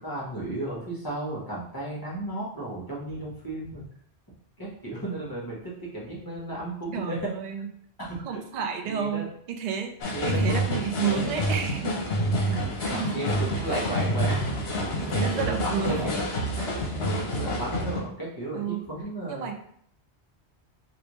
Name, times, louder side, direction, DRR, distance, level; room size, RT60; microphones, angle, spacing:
voice 1, 0.0-3.9 4.6-7.3 8.0-8.4 8.8-9.2 10.1-10.6 11.0-11.3 12.5-12.6 12.9-16.1 17.1-19.5, right 1 dB, 20° left, -5 dB, 0.9 m, -34 dB
voice 2, 6.9-7.7 8.2-12.1 12.4-12.5 12.8-13.4 15.0-16.0 16.6-16.7 18.5-18.9 19.3-19.5, right 7 dB, 60° right, 4 dB, 0.4 m, -31 dB
sound 1, 10.0-18.0, equal, 70° left, 0.9 m, -28 dB
3.3 x 2.6 x 3.0 m, 0.66 s
omnidirectional pair, 1.1 m